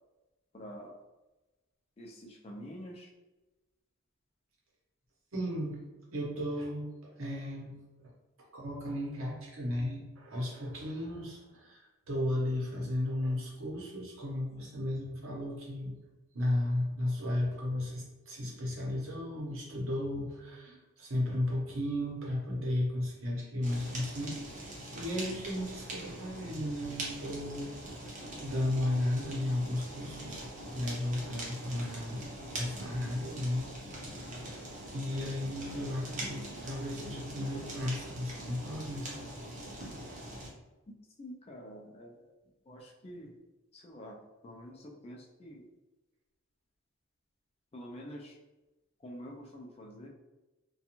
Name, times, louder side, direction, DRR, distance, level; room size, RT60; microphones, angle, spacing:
voice 1, 0.5-1.0 2.0-3.1 41.2-42.2 42.7-43.3 43.7-44.2 44.4-45.7 47.7-48.4 49.0-50.1, equal, 25° left, 0 dB, 0.3 m, -47 dB
voice 2, 5.3-5.8 6.1-6.9 7.2-8.1 8.5-16.0 16.3-30.4 30.7-32.3 32.6-33.7 34.2-34.4 34.9-39.1, left 1 dB, 75° right, -3 dB, 0.8 m, -34 dB
Fire, 23.6-40.5, right 1 dB, 35° right, 0.6 m, -43 dB
2.4 x 2.3 x 2.9 m, 1.1 s
head